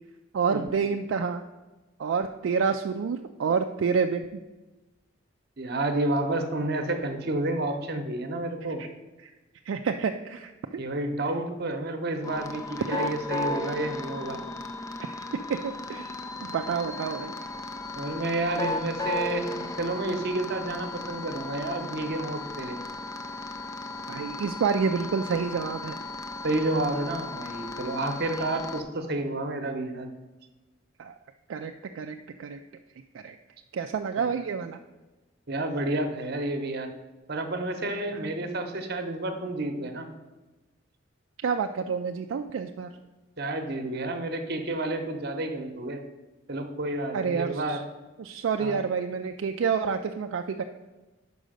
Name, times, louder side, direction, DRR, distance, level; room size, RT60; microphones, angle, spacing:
voice 1, 0.3-1.4 2.0-4.4 8.8-8.9 9.2-9.3 9.7-10.8 12.9-13.0 13.5-13.6 15.0-15.1 15.5-16.1 16.5-17.3 24.1-26.0 31.0-31.1 31.5-32.6 33.1-33.4 33.7-34.8 38.1-38.2 41.4-42.9 47.1-47.8 48.2-50.6, right 6 dB, 75° right, 5 dB, 0.3 m, -28 dB
voice 2, 5.6-8.8 10.8-14.4 18.0-19.5 19.8-22.8 26.4-30.1 34.2-34.3 35.5-36.9 37.3-40.1 43.4-46.0 46.5-47.8 48.6-48.8, right 2 dB, 55° right, 6 dB, 0.9 m, -30 dB
sound 1, 12.2-28.8, left 2 dB, 15° left, 0.4 m, -35 dB
5.5 x 5.1 x 6.4 m, 1.1 s
head